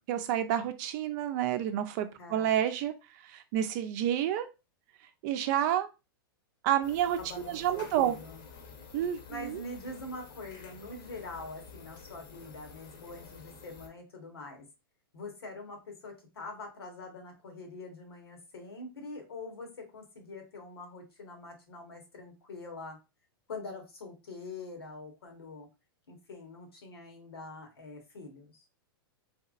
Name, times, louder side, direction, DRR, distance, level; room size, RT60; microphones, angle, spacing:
voice 1, 0.1-2.9 3.2-4.5 5.2-5.9 6.6-7.2 7.5-8.2 8.9-9.6, right 11 dB, 50° right, 9 dB, 0.6 m, -29 dB
voice 2, 2.2-2.6 7.2-8.4 9.3-14.7 15.1-23.0 23.5-25.7 26.1-28.6, left 2 dB, 85° left, 3 dB, 1.4 m, -44 dB
sound 1, 6.8-13.9, left 5 dB, 60° left, 1.0 m, -50 dB
3.4 x 2.9 x 2.4 m, 0.27 s
hypercardioid pair, 120°, 13 cm